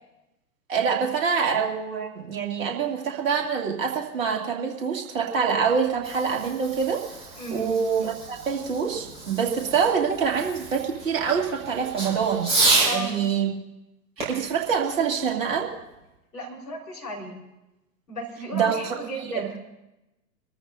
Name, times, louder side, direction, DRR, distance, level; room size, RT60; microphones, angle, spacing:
voice 1, 0.7-13.5 14.3-15.7 18.5-19.0 19.3-19.4, right 6 dB, 50° right, 1 dB, 2.5 m, -25 dB
Fireworks, 5.7-13.0 14.2-15.8, right 3 dB, 10° right, 5.5 m, -30 dB
voice 2, 7.4-7.7 12.8-13.2 16.3-17.4 18.1-19.6, equal, 75° left, -1 dB, 4.3 m, -35 dB
25.5 x 13.5 x 2.7 m, 0.94 s
figure-of-eight pair, 105°, 49 cm